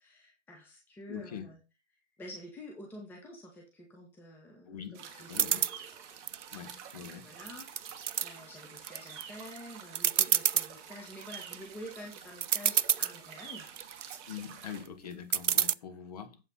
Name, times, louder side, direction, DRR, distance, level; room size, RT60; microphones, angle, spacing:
voice 1, 0.0-1.6 2.2-5.6 6.9-13.7 14.4-14.6 15.6-15.7, left 1 dB, 5° left, 1.4 m, -48 dB
voice 2, 1.1-1.5 4.7-5.7 6.5-7.3 14.3-16.4, left 8 dB, 30° left, 1.7 m, -44 dB
sound 1, 4.9-14.9, right 8 dB, 15° right, 1.2 m, -48 dB
sound 2, 5.3-5.8 6.3-7.1 7.5-8.3 8.8-9.2 9.6-9.7 10.0-10.7 11.2-11.6 12.1-12.2 12.4-13.2 13.7-14.2 15.3-15.7, right 8 dB, 80° right, 0.5 m, -28 dB
7.9 x 5.9 x 5.6 m
figure-of-eight pair, 140°, 36 cm